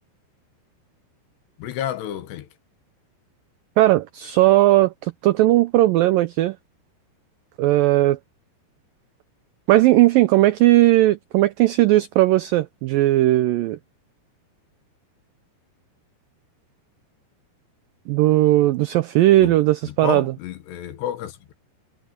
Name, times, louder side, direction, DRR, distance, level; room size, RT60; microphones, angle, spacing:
voice 1, 1.6-2.5 19.4-19.6 19.8-21.5, left 11 dB, 80° left, 3.5 m, -31 dB
voice 2, 3.8-6.6 7.6-8.2 9.7-13.8 18.1-20.2, right 16 dB, 90° right, 1.9 m, -17 dB
omnidirectional pair, 4.9 m